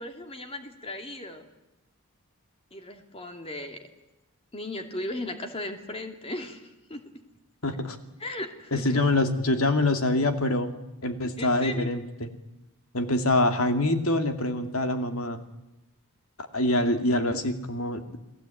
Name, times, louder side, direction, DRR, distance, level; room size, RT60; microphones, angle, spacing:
voice 1, 0.0-1.4 2.7-3.8 4.5-7.0 8.2-9.0 11.4-11.9, left 1 dB, 25° left, 5 dB, 2.7 m, -36 dB
voice 2, 7.6-8.0 8.7-10.7 11.0-12.3 12.9-15.4 16.5-18.0, left 2 dB, 70° left, 7 dB, 2.5 m, -25 dB
30.0 x 19.5 x 9.1 m, 0.94 s
head